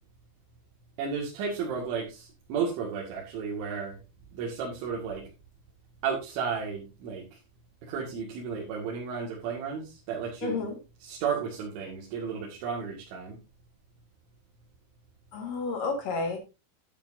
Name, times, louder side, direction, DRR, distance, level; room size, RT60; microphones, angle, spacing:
voice 1, 1.0-4.0 4.3-5.2 6.0-7.3 7.8-10.7 11.0-13.4, right 6 dB, 85° right, -3 dB, 4.5 m, -33 dB
voice 2, 10.4-10.7 15.3-16.4, left 4 dB, 55° left, 4 dB, 2.8 m, -30 dB
11.5 x 10.5 x 2.7 m, 0.28 s
omnidirectional pair, 5.3 m